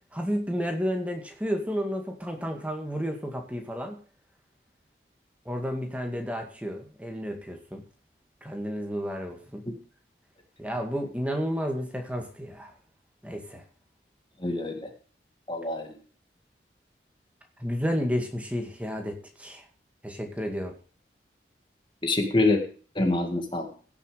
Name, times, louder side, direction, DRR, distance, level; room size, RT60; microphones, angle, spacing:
voice 1, 0.1-4.0 5.5-7.8 8.4-9.6 10.6-12.7 13.2-13.6 17.6-19.7 20.0-20.7, equal, 10° right, 3 dB, 2.1 m, -31 dB
voice 2, 14.4-14.7 15.5-16.0 22.0-22.6 23.0-23.7, left 2 dB, 25° left, 5 dB, 1.9 m, -25 dB
16.5 x 7.1 x 5.1 m, 0.40 s
head